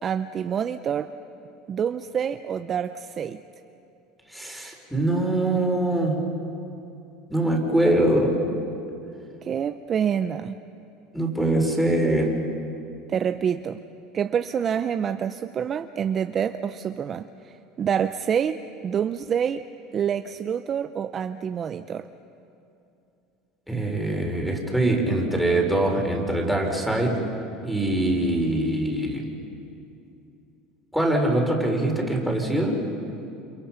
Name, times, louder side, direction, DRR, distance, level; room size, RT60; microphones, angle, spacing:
voice 1, 0.0-1.1 1.7-3.4 9.4-10.5 13.1-13.8 14.1-19.6 19.9-22.1, right 8 dB, 30° right, 9 dB, 0.6 m, -27 dB
voice 2, 4.3-6.2 7.3-8.4 11.1-12.3 23.7-27.2 27.6-29.2 30.9-32.8, right 1 dB, ahead, 0 dB, 4.2 m, -23 dB
29.0 x 26.5 x 5.8 m, 2.7 s
supercardioid pair, 130°, 0 cm